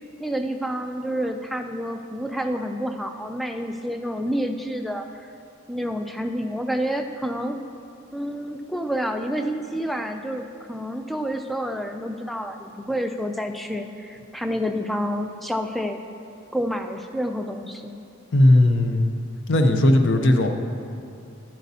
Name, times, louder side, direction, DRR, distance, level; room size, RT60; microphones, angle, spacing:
voice 1, 0.2-5.3 5.7-7.6 8.1-16.0 16.5-18.0, equal, ahead, 5 dB, 0.3 m, -29 dB
voice 2, 18.3-19.1 19.5-20.5, left 1 dB, 60° left, 6 dB, 0.6 m, -17 dB
11.0 x 8.2 x 2.7 m, 2.6 s
head